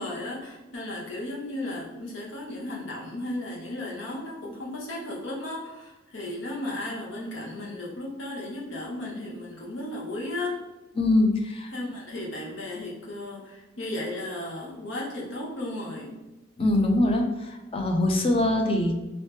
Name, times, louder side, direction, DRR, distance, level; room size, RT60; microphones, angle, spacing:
voice 1, 0.0-10.6 11.7-16.1, left 1 dB, 80° left, -3 dB, 0.9 m, -35 dB
voice 2, 11.0-11.7 16.6-17.3 17.7-18.9, left 2 dB, 30° left, 3 dB, 0.5 m, -22 dB
3.1 x 3.0 x 3.3 m, 1.1 s
head